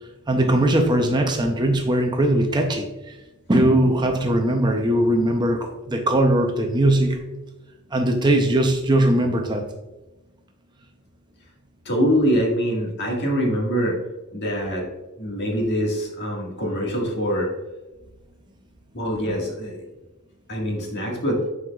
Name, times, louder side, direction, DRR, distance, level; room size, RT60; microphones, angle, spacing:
voice 1, 0.3-3.2 3.5-7.2 7.9-9.7, right 1 dB, 20° right, 4 dB, 0.6 m, -20 dB
voice 2, 11.9-14.0 14.3-14.8 15.2-17.5 18.9-19.8 20.5-21.4, equal, 50° left, -1 dB, 1.8 m, -24 dB
9.9 x 4.7 x 2.3 m, 1.1 s
head